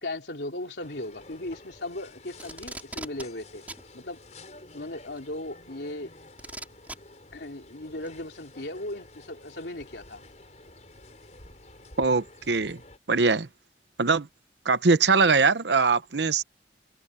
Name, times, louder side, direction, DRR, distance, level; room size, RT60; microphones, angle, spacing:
voice 1, 0.0-3.6 3.9-4.2 4.7-6.1 7.3-10.2, left 1 dB, 80° left, 3.1 m, -37 dB
sound 1, 0.8-13.0, left 2 dB, 40° left, 6.4 m, -50 dB
Packing tape duct tape, 2.4-3.2 3.7-3.8 5.2-5.3 6.4-7.0 8.0-8.1, right 2 dB, 10° right, 5.1 m, -39 dB
voice 2, 12.0-12.8 13.1-13.5 14.0-14.3 14.6-16.4, right 4 dB, 80° right, 1.0 m, -22 dB
head